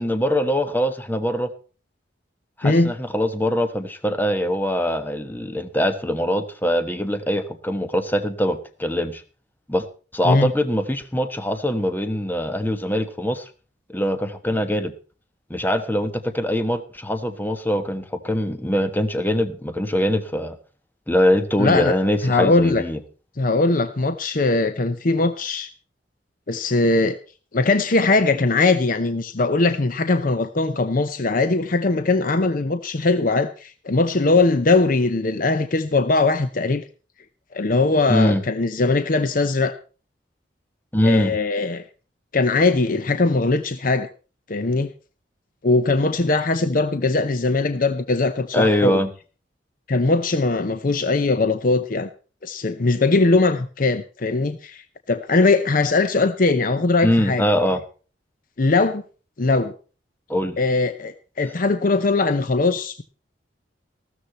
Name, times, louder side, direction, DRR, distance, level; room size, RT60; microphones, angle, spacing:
voice 1, 0.0-1.5 2.6-9.2 9.7-9.9 10.1-13.5 13.9-14.9 15.5-20.6 21.1-23.0 38.1-38.4 40.9-41.4 48.5-49.1 57.0-57.8 60.3-60.6, equal, 10° left, 9 dB, 1.2 m, -22 dB
voice 2, 2.6-2.9 10.2-10.5 21.6-22.0 22.2-22.8 23.4-25.7 26.5-27.2 27.5-36.8 37.5-39.7 41.0-41.8 42.3-44.1 44.5-44.9 45.6-49.0 49.9-52.1 52.4-57.4 58.6-59.0 59.4-59.7 60.6-63.0, left 3 dB, 50° left, 11 dB, 0.7 m, -20 dB
14.5 x 13.0 x 4.3 m, 0.37 s
head